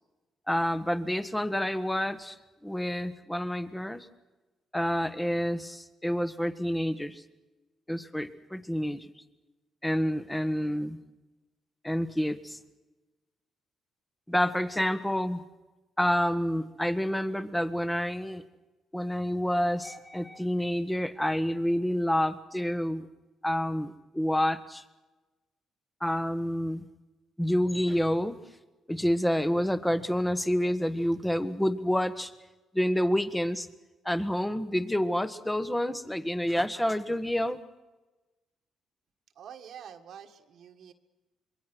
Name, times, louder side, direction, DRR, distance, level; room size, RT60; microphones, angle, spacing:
voice 1, 0.5-2.4 2.6-4.1 4.7-7.2 7.9-9.1 9.8-11.0 11.8-12.6 14.3-15.4 16.0-18.4 18.9-23.1 23.4-24.8 26.0-26.9 27.4-28.4 28.9-32.3 32.7-33.7 34.0-37.6, equal, 5° left, 12 dB, 1.4 m, -28 dB
voice 2, 39.4-40.9, right 8 dB, 70° right, 4 dB, 1.7 m, -47 dB
26.0 x 22.5 x 6.3 m, 1.1 s
cardioid pair, 90°, 0 cm